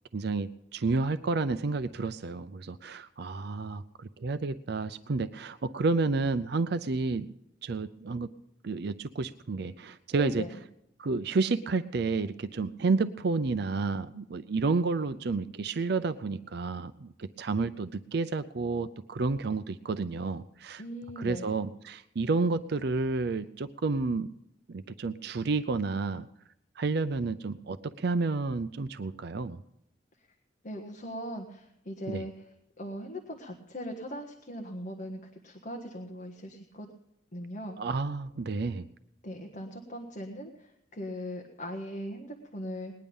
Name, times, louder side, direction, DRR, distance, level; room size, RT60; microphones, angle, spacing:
voice 1, 0.1-7.3 7.6-8.3 8.6-10.5 11.0-20.8 21.2-24.3 24.7-26.3 26.8-29.6 32.1-32.2 37.8-38.9, right 3 dB, 60° right, 12 dB, 0.5 m, -30 dB
voice 2, 10.1-10.6 20.8-21.5 30.6-32.3 32.8-36.9 37.3-37.8 39.2-42.9, equal, 45° left, 2 dB, 1.5 m, -39 dB
20.0 x 10.5 x 5.4 m, 0.81 s
head